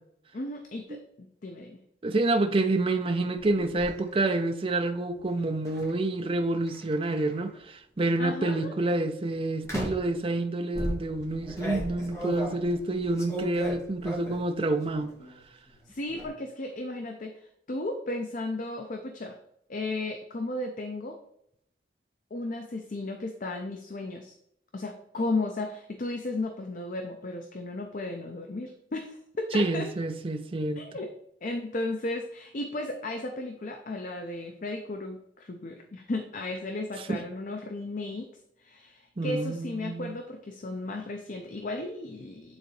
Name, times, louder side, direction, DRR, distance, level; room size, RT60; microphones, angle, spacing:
voice 1, 0.3-1.8 8.2-8.7 15.9-19.4 19.7-21.2 22.3-24.4 24.7-29.9 30.8-31.1 31.4-38.3 38.6-42.6, left 2 dB, 50° left, 0.6 m, -35 dB
voice 2, 2.0-15.1 29.5-30.9 37.1-37.2 39.2-40.2, right 2 dB, 30° right, 0.5 m, -28 dB
sound 1, 3.4-3.9 5.7-5.9 6.7-7.5 8.2-8.5 9.6-10.1 10.7-14.5 14.9-15.4 15.7-16.3, equal, 15° left, 1.4 m, -36 dB
8.9 x 4.0 x 3.2 m
head